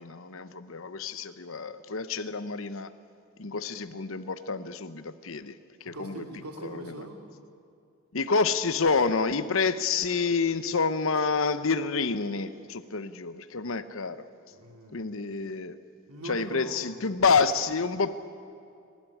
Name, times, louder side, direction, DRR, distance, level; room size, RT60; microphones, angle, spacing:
voice 1, 0.0-2.9 3.4-5.5 5.8-6.1 6.6-6.8 8.1-14.2 14.9-15.7 16.2-18.1, left 4 dB, 60° left, 13 dB, 0.9 m, -28 dB
voice 2, 5.9-7.2 14.5-15.1 16.1-17.0, right 2 dB, 85° right, 3 dB, 2.6 m, -41 dB
26.0 x 13.0 x 9.9 m, 2.5 s
head